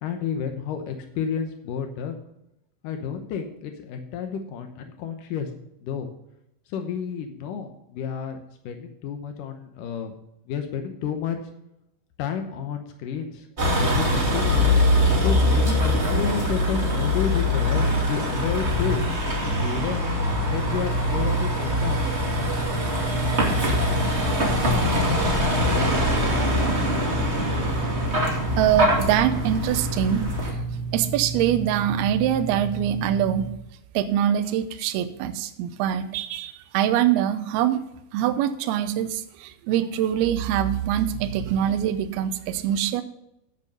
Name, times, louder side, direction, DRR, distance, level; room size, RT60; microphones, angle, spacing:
voice 1, 0.0-2.2 2.8-5.5 5.8-6.1 6.7-8.4 8.7-10.1 10.5-11.4 12.2-13.5 13.8-14.7 15.1-19.0 19.6-20.1 20.5-22.0, left 7 dB, 85° left, 5 dB, 1.8 m, -30 dB
Vehicle, 13.6-30.5, left 1 dB, 30° right, 1.2 m, -23 dB
sound 1, 20.3-33.5, right 4 dB, 50° left, 2.6 m, -32 dB
voice 2, 28.6-30.3 30.9-33.5 33.9-37.8 38.1-43.0, right 10 dB, 75° right, 9 dB, 2.4 m, -24 dB
10.5 x 8.2 x 5.4 m, 0.83 s
omnidirectional pair, 5.3 m